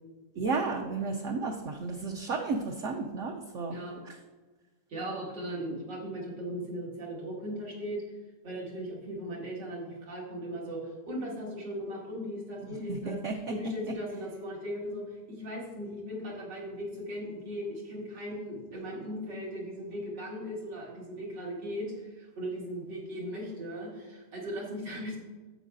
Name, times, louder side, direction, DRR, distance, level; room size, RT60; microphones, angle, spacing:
voice 1, 0.4-3.8 4.0-4.1 12.6-13.3, right 4 dB, 60° right, 2 dB, 0.9 m, -33 dB
voice 2, 3.6-4.0 4.9-8.0 8.4-13.2 13.5-25.2, equal, 85° right, -4 dB, 3.0 m, -38 dB
11.0 x 8.5 x 2.6 m, 1.3 s
omnidirectional pair, 1.9 m